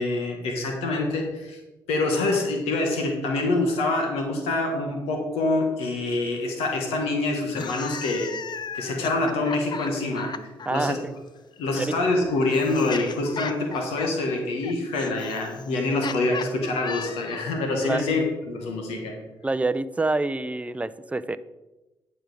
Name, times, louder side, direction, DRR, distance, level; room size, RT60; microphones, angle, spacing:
voice 1, 0.0-1.6 1.9-8.3 8.7-10.3 10.7-11.0 11.6-19.2, left 2 dB, 85° left, 2 dB, 1.4 m, -26 dB
sound 1, 7.4-10.7 11.7-17.6, left 6 dB, 45° left, 0.6 m, -36 dB
voice 2, 10.7-11.0 11.8-12.0 17.8-18.0 19.4-21.4, right 2 dB, 15° right, 14 dB, 0.5 m, -26 dB
10.5 x 5.0 x 4.9 m, 1.1 s
supercardioid pair, 50°, 10 cm